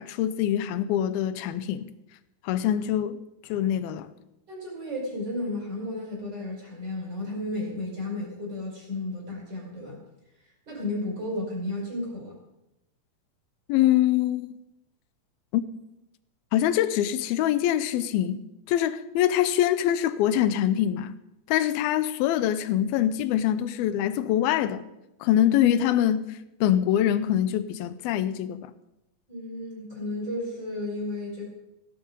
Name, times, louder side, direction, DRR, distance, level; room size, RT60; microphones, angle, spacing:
voice 1, 0.0-1.9 2.4-3.2 3.5-4.1 13.7-14.5 15.5-15.6 16.5-21.2 21.5-24.8 25.2-28.7, left 11 dB, 85° left, 2.5 m, -24 dB
voice 2, 4.5-10.0 10.7-12.4 29.3-31.5, left 1 dB, 25° right, 5.9 m, -33 dB
16.5 x 12.0 x 5.3 m
omnidirectional pair, 4.4 m